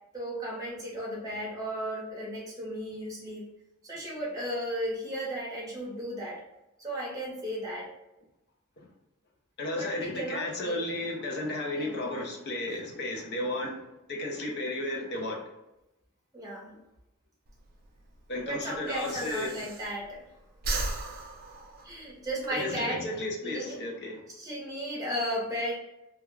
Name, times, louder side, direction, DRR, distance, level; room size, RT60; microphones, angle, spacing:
voice 1, 0.1-3.4 3.8-6.4 6.8-7.9 9.7-10.8 11.7-12.0 16.3-16.8 18.4-20.2 21.8-23.0 23.4-23.8 24.3-25.7, equal, 15° right, -4 dB, 0.7 m, -35 dB
voice 2, 9.6-13.8 14.1-15.4 18.3-19.6 22.5-24.2, left 1 dB, 50° left, 0 dB, 0.5 m, -33 dB
Breathing, 17.5-20.2 20.5-22.5, right 2 dB, 45° right, 0.4 m, -36 dB
2.3 x 2.1 x 3.1 m, 0.92 s
head